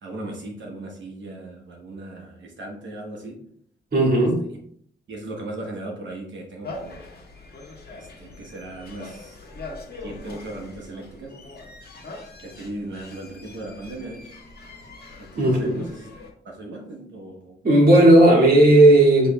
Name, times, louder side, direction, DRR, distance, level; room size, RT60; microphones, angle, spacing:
voice 1, 0.0-3.4 4.1-4.2 5.1-7.0 7.9-9.4 10.0-11.4 12.4-14.3 15.2-16.1 16.4-17.6, right 1 dB, 75° right, 0 dB, 1.0 m, -37 dB
voice 2, 3.9-4.4 15.4-15.8 17.6-19.3, right 1 dB, 50° right, -4 dB, 1.9 m, -14 dB
sound 1, 6.6-16.3, left 2 dB, 55° left, 1.2 m, -42 dB
6.7 x 3.1 x 2.2 m, 0.66 s
cardioid pair, 85°, 19 cm